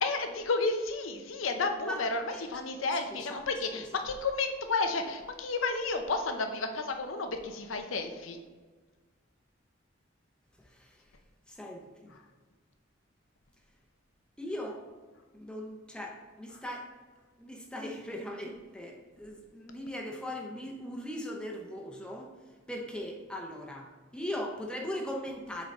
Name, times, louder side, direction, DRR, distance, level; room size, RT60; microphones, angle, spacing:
voice 1, 0.0-8.4 12.1-12.2, left 3 dB, 80° left, 6 dB, 0.7 m, -32 dB
voice 2, 3.1-3.4 3.9-4.1 10.6-11.0 11.5-12.1 14.4-14.8 15.3-16.9 17.4-22.3 22.7-25.7, left 1 dB, 5° left, 0 dB, 0.8 m, -39 dB
7.5 x 3.9 x 4.2 m, 1.4 s
head